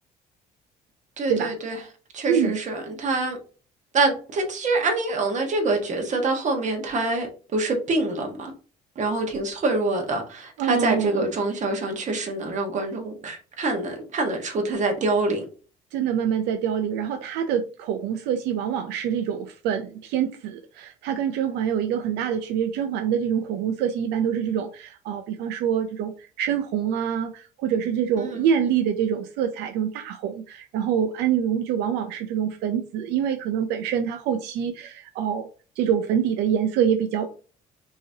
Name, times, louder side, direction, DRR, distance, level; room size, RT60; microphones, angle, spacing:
voice 1, 1.2-1.8 2.1-3.4 3.9-7.3 7.5-8.5 8.9-15.4 28.2-28.4, right 2 dB, 45° right, 1.4 m, -25 dB
voice 2, 2.3-2.6 10.6-11.2 15.9-35.5 35.8-37.3, right 8 dB, 90° right, 0.5 m, -25 dB
5.6 x 2.9 x 2.8 m
cardioid pair, 110°, 17 cm